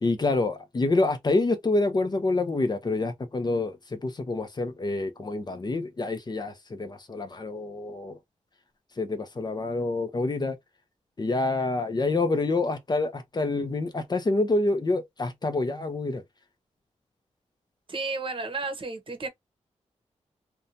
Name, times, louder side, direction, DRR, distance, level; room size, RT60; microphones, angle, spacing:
voice 1, 0.0-8.2 9.0-10.6 11.2-16.2, left 2 dB, 35° left, 0.6 m, -27 dB
voice 2, 17.9-19.3, right 3 dB, 45° right, 0.8 m, -32 dB
2.7 x 2.2 x 2.6 m
cardioid pair, 75°, 12 cm